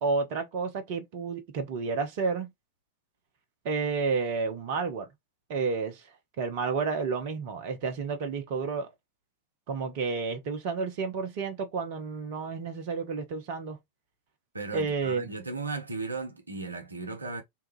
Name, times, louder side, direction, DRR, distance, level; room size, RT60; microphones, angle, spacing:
voice 1, 0.0-2.5 3.6-5.1 5.5-6.0 6.4-8.9 9.7-13.8 14.7-15.3, right 4 dB, 45° right, 0.7 m, -30 dB
voice 2, 14.5-17.4, right 3 dB, 80° right, 0.8 m, -36 dB
3.6 x 2.3 x 3.0 m
figure-of-eight pair, 90°, 0 cm